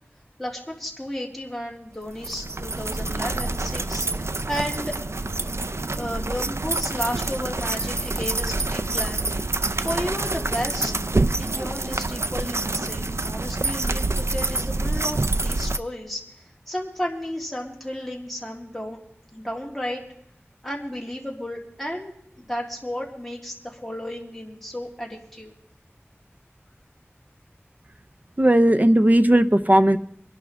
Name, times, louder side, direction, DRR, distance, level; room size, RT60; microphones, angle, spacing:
voice 1, 0.4-5.0 6.0-9.2 9.7-10.9 11.4-16.2 16.7-19.0 19.3-20.0 20.6-25.5, equal, 5° left, -2 dB, 3.4 m, -33 dB
sound 1, 2.1-15.8, right 2 dB, 75° right, 0.5 m, -27 dB
voice 2, 28.4-30.0, right 1 dB, 40° right, 9 dB, 0.8 m, -16 dB
24.5 x 11.5 x 3.6 m, 0.69 s
wide cardioid pair, 40°, 5 cm